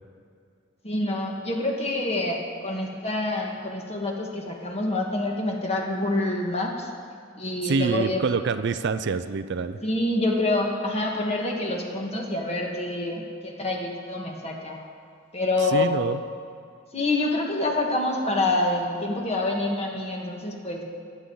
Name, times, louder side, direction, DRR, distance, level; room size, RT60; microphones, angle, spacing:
voice 1, 0.8-6.9 7.3-8.2 9.8-14.8 15.3-15.9 16.9-20.8, left 2 dB, 30° left, 0 dB, 1.6 m, -27 dB
voice 2, 7.6-9.8 15.7-16.2, right 4 dB, 60° right, 11 dB, 0.4 m, -26 dB
21.5 x 8.6 x 3.9 m, 2.3 s
head